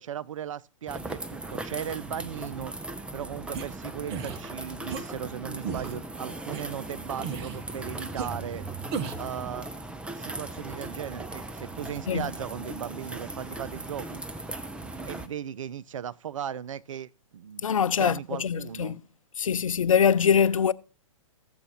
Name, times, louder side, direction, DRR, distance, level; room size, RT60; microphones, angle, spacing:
voice 1, 0.0-2.7 3.1-8.6 9.2-9.7 10.2-14.2 15.0-17.6 18.0-19.0, right 9 dB, 70° right, 0.6 m, -37 dB
sound 1, 0.9-15.3, right 2 dB, 5° right, 0.8 m, -38 dB
sound 2, 3.5-3.6 4.1-4.4 4.9-5.0 5.6-6.0 6.5-6.6 7.2-7.6 8.2-8.3 8.9-9.3, right 6 dB, 35° right, 1.3 m, -33 dB
voice 2, 17.6-19.0 19.4-20.7, left 7 dB, 80° left, 0.6 m, -23 dB
14.0 x 7.9 x 4.4 m
hypercardioid pair, 120°, 17 cm